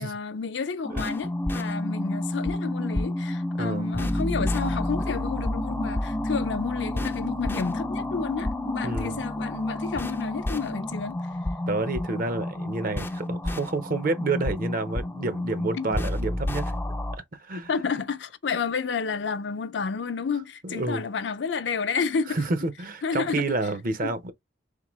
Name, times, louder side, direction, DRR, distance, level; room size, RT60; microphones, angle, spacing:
voice 1, 0.0-11.3 15.8-15.9 17.7-22.4 23.0-23.5 24.0-24.1, left 5 dB, 70° left, 0.5 m, -30 dB
sound 1, 0.8-17.2, left 1 dB, 10° left, 0.3 m, -30 dB
voice 2, 3.6-3.9 8.8-9.2 11.7-16.7 17.1-17.7 20.6-21.0 22.3-24.3, right 3 dB, 50° right, 0.7 m, -29 dB
3.7 x 3.7 x 3.0 m
head